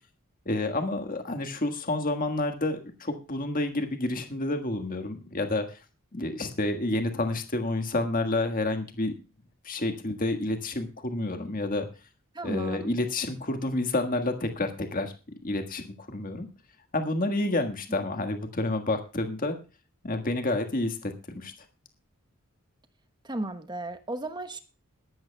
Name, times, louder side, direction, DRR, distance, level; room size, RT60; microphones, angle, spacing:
voice 1, 0.4-5.8 6.1-9.1 9.6-11.9 12.4-15.1 15.4-16.5 16.9-19.6 20.0-21.5, left 2 dB, 40° left, 6 dB, 1.6 m, -29 dB
voice 2, 12.3-12.9 23.2-24.6, right 2 dB, 20° right, 9 dB, 1.0 m, -34 dB
21.0 x 12.0 x 2.3 m, 0.31 s
head